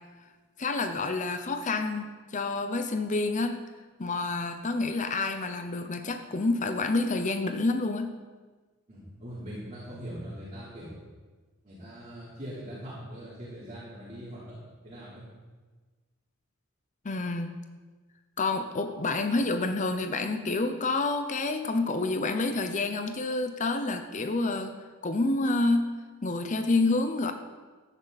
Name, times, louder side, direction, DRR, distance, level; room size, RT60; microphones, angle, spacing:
voice 1, 0.6-3.6 4.0-8.1 17.0-17.6 18.4-24.8 25.0-25.9 26.2-27.3, left 3 dB, 35° left, 7 dB, 0.6 m, -28 dB
voice 2, 8.9-10.9 11.6-14.5 14.8-15.2, equal, 30° right, -10 dB, 3.5 m, -41 dB
14.0 x 10.0 x 4.1 m, 1.4 s
head